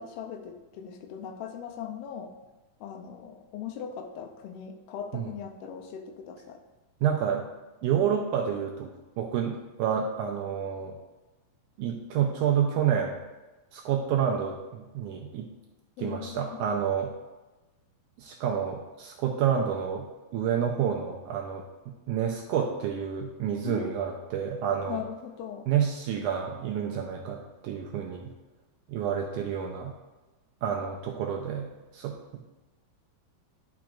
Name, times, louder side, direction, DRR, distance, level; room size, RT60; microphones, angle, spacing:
voice 1, 0.0-2.3 2.8-6.6 16.0-16.6 23.6-24.5 24.9-25.7, left 8 dB, 85° left, 5 dB, 2.5 m, -39 dB
voice 2, 7.0-7.4 7.8-8.9 9.2-11.0 11.8-13.2 13.7-15.5 16.0-17.1 18.2-20.1 20.3-21.6 22.1-25.0 25.7-28.3 28.9-29.9 30.6-32.2, right 8 dB, 90° right, 0 dB, 1.8 m, -29 dB
10.5 x 5.9 x 2.5 m, 1.1 s
omnidirectional pair, 4.2 m